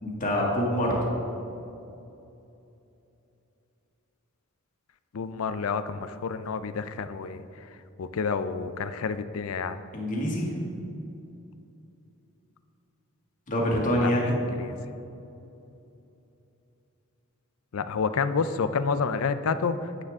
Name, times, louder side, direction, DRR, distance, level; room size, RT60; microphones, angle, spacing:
voice 1, 0.0-1.0 9.9-10.5 13.5-14.4, equal, 40° left, -3 dB, 2.0 m, -25 dB
voice 2, 5.1-7.4 8.0-9.8 13.9-14.1 14.5-14.8 17.7-20.0, left 5 dB, 75° left, 11 dB, 0.5 m, -29 dB
9.7 x 9.0 x 3.6 m, 2.8 s
head